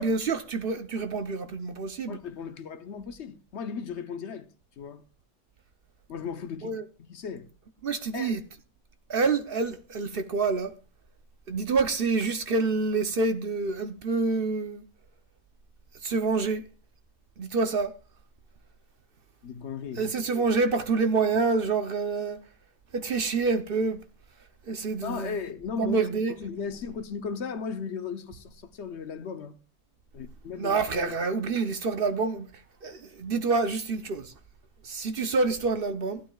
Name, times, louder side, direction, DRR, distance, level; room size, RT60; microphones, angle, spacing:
voice 1, 0.0-2.2 6.6-6.8 7.8-8.4 9.1-10.7 11.5-14.8 16.0-16.7 17.4-17.9 20.0-22.4 22.9-24.0 24.7-25.4 25.8-26.3 30.6-32.5 32.8-34.3 34.8-36.2, right 4 dB, 50° right, 0.9 m, -27 dB
voice 2, 2.1-4.5 4.8-5.0 6.1-7.4 8.1-8.4 19.4-20.1 25.0-26.0 26.4-29.6 30.1-31.2, left 6 dB, 65° left, 1.1 m, -36 dB
15.5 x 12.0 x 2.3 m
omnidirectional pair, 1.3 m